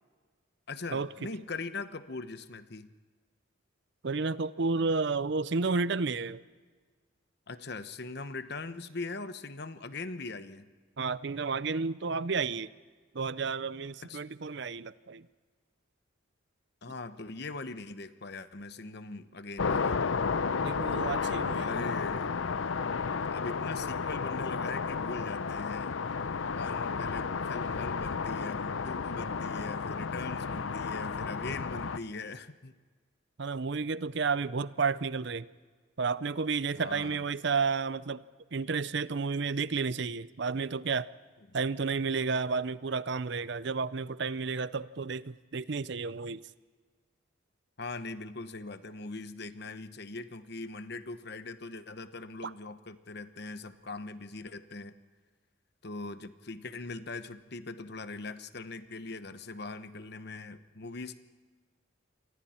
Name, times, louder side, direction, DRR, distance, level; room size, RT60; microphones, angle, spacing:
voice 1, 0.7-2.9 7.5-10.7 14.0-14.2 16.8-20.0 21.6-22.4 23.3-26.0 26.5-32.8 36.7-37.2 47.8-54.9 55.8-61.2, left 3 dB, 55° left, 11 dB, 1.0 m, -41 dB
voice 2, 4.0-6.4 11.0-12.7 13.1-15.3 20.6-21.8 33.4-35.5 36.0-38.2 38.5-41.1 41.5-46.4 52.4-52.5, right 4 dB, 60° right, 17 dB, 0.6 m, -31 dB
sound 1, 19.6-32.0, left 5 dB, 80° left, 0.6 m, -32 dB
28.5 x 24.5 x 4.4 m, 1.5 s
head